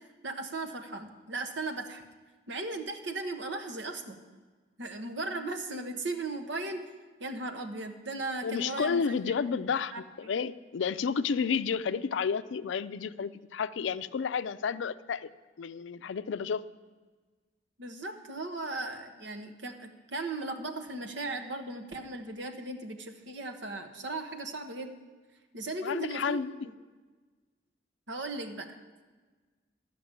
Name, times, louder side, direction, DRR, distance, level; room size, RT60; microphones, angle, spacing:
voice 1, 0.2-2.0 2.5-4.2 4.8-6.8 7.2-9.3 9.9-10.0 17.8-25.0 25.5-26.4 28.1-28.7, right 2 dB, 75° right, 6 dB, 1.2 m, -37 dB
voice 2, 8.4-15.3 15.6-16.6 25.8-26.5, left 6 dB, 80° left, 14 dB, 0.4 m, -31 dB
12.5 x 5.9 x 8.7 m, 1.3 s
head